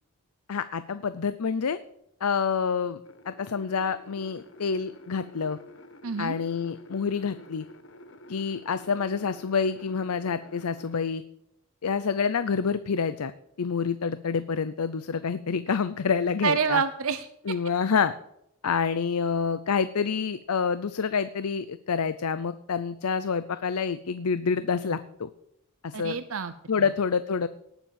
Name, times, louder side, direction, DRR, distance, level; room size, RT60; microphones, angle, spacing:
voice 1, 0.5-1.8 2.2-3.0 3.3-5.6 6.2-7.6 8.3-11.2 11.8-13.3 13.6-16.8 17.5-18.1 18.6-25.3 25.8-26.2 26.7-27.5, left 5 dB, 85° left, 13 dB, 0.6 m, -27 dB
sound 1, 3.0-11.0, left 1 dB, 55° left, 1.3 m, -49 dB
voice 2, 6.0-6.4 16.4-17.5 25.9-26.5 26.8-26.9, right 6 dB, 70° right, 11 dB, 0.8 m, -28 dB
18.5 x 7.2 x 7.4 m, 0.79 s
head